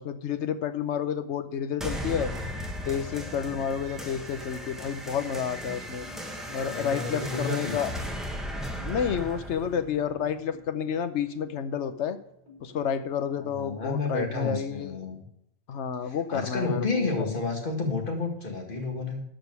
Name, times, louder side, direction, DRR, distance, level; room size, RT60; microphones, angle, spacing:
voice 1, 0.0-2.3 2.9-6.0 6.5-7.9 8.8-12.2 12.6-15.0 15.7-17.1, left 8 dB, 65° left, 10 dB, 1.0 m, -30 dB
sound 1, 1.8-10.8, equal, ahead, 1.3 m, -36 dB
sound 2, 6.0-7.0 7.4-7.9 8.8-9.3 9.7-10.7 11.1-11.6 12.5-13.0, left 4 dB, 15° right, 4.6 m, -51 dB
voice 2, 6.6-7.8 13.3-15.2 16.0-19.2, left 3 dB, 40° left, 2 dB, 2.1 m, -31 dB
13.0 x 5.1 x 6.2 m, 0.77 s
omnidirectional pair, 1.3 m